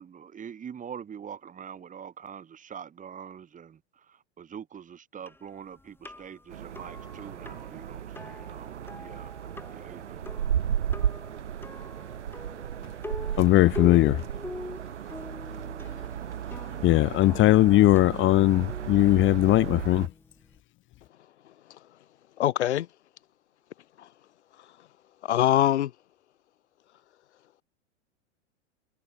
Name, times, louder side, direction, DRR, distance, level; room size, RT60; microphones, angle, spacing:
voice 1, 0.0-9.3 9.7-10.2, right 8 dB, 20° right, 3.3 m, -44 dB
sound 1, 5.3-20.6, left 2 dB, 5° left, 5.5 m, -44 dB
sound 2, 6.5-20.1, right 9 dB, 75° right, 3.3 m, -34 dB
voice 2, 13.4-14.2 16.8-20.1, left 16 dB, 35° left, 1.5 m, -19 dB
voice 3, 22.4-22.9 25.2-25.9, left 12 dB, 70° left, 1.4 m, -23 dB
hypercardioid pair, 100°, 35 cm